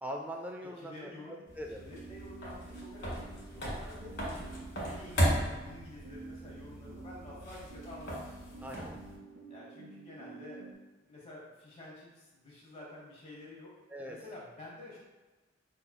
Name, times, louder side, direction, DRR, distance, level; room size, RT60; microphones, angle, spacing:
voice 1, 0.0-1.9 8.6-9.0 13.9-14.2, equal, 10° right, 2 dB, 0.3 m, -42 dB
voice 2, 0.8-8.2 9.5-10.7 11.0-13.7 14.0-15.0, left 2 dB, 30° left, -4 dB, 1.0 m, -50 dB
sound 1, 1.5-9.2, equal, 60° left, 1.3 m, -36 dB
sound 2, 1.8-10.7, right 4 dB, 65° right, 0.5 m, -50 dB
5.3 x 2.8 x 2.2 m, 1.2 s
head